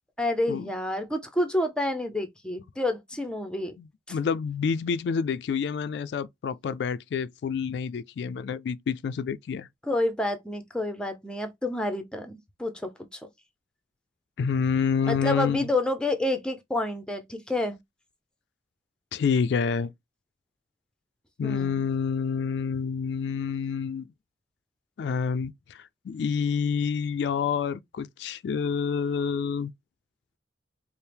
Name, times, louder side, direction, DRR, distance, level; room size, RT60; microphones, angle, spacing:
voice 1, 0.2-3.8 9.8-12.9 15.1-17.8 21.4-21.8, left 1 dB, 5° left, 0.6 m, -29 dB
voice 2, 3.8-9.7 14.4-15.7 19.1-19.9 21.4-24.1 25.0-29.7, left 6 dB, 75° left, 0.3 m, -28 dB
4.4 x 2.0 x 3.3 m
head